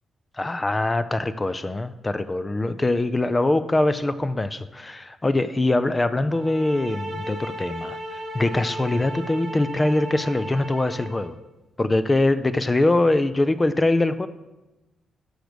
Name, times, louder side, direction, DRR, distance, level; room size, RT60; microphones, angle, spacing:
voice 1, 0.4-11.4 11.8-14.3, left 2 dB, 15° left, 14 dB, 0.4 m, -23 dB
sound 1, 6.3-11.3, equal, 50° right, 3.5 m, -35 dB
12.0 x 6.5 x 5.1 m, 1.0 s
wide cardioid pair, 160°, 0 cm